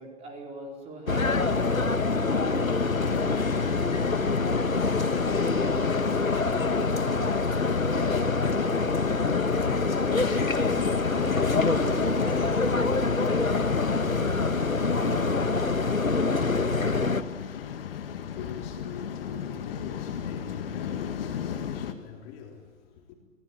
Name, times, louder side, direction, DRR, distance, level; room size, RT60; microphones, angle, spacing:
voice 1, 0.0-3.8 11.7-16.3, right 2 dB, 15° right, 4.4 m, -42 dB
sound 1, 1.1-17.2, left 3 dB, 90° left, 1.5 m, -25 dB
Waves surf, 2.8-21.9, left 8 dB, 45° left, 2.1 m, -35 dB
voice 2, 4.3-11.0 17.6-23.1, left 7 dB, 25° left, 3.8 m, -44 dB
27.0 x 19.5 x 8.9 m
figure-of-eight pair, 130°, 40 cm